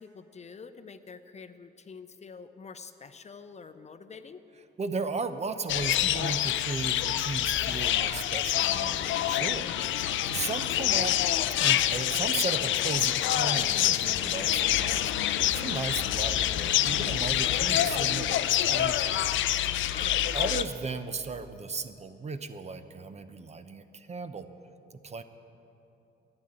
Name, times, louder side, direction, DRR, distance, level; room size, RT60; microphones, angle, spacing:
voice 1, 0.0-4.4 19.9-20.2, left 5 dB, 35° left, 10 dB, 0.7 m, -46 dB
voice 2, 4.8-9.7 10.3-11.2 11.6-19.3 20.3-24.5 24.9-25.2, right 4 dB, 35° right, 10 dB, 0.7 m, -36 dB
sound 1, 5.7-20.6, left 12 dB, 75° left, 0.5 m, -27 dB
12.0 x 9.9 x 8.8 m, 2.9 s
cardioid pair, 90°, 20 cm